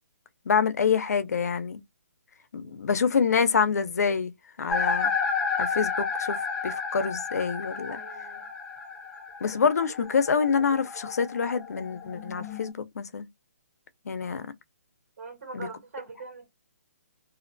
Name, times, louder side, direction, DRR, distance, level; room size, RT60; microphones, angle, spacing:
voice 1, 0.5-1.8 2.5-4.3 4.6-5.1 5.6-8.0 9.4-13.3 14.1-14.5 15.5-15.7, left 6 dB, 80° left, 0.5 m, -26 dB
sound 1, 4.7-12.7, left 5 dB, 5° left, 0.3 m, -32 dB
voice 2, 7.9-8.5 15.2-16.5, right 4 dB, 65° right, 1.4 m, -42 dB
2.5 x 2.1 x 2.5 m
hypercardioid pair, 170°, 8 cm